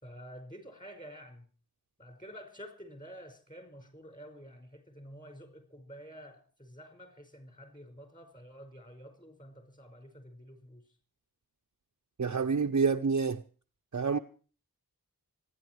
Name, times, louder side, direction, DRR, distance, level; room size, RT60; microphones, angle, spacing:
voice 1, 0.0-1.5 2.0-10.8, equal, 20° left, 5.4 m, -49 dB
voice 2, 12.2-13.4 13.9-14.2, right 5 dB, 50° right, 0.7 m, -28 dB
26.5 x 10.0 x 4.6 m
wide cardioid pair, 55°, 38 cm